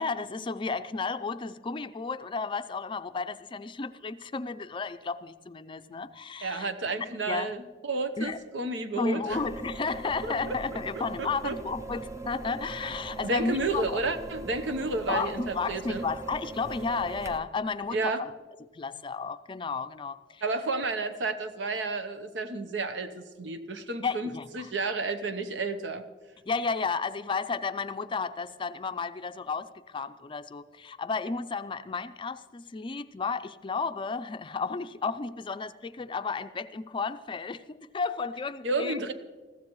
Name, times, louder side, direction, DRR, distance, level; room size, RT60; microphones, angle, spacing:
voice 1, 0.0-6.7 7.3-7.5 8.2-8.4 9.0-14.0 15.1-18.3 18.7-20.4 24.0-24.7 26.5-39.1, left 4 dB, 30° left, 11 dB, 0.4 m, -33 dB
voice 2, 6.4-9.4 10.2-10.5 11.2-11.6 13.2-16.0 17.9-18.2 20.4-26.0 38.6-39.1, right 3 dB, 80° right, 10 dB, 0.9 m, -31 dB
sound 1, 9.3-17.4, right 3 dB, 15° right, 0.6 m, -40 dB
20.5 x 15.0 x 3.1 m, 1.4 s
head